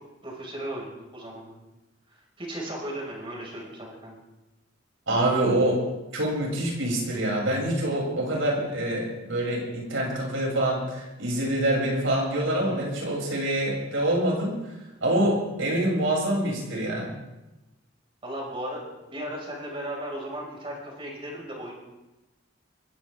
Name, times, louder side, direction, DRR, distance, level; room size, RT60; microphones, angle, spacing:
voice 1, 0.2-1.6 2.1-4.1 18.2-21.7, right 1 dB, 30° right, -2 dB, 6.0 m, -36 dB
voice 2, 5.1-5.8 6.1-14.7 15.0-17.1, right 1 dB, 90° right, -3 dB, 7.3 m, -26 dB
22.5 x 16.0 x 3.7 m, 0.99 s
head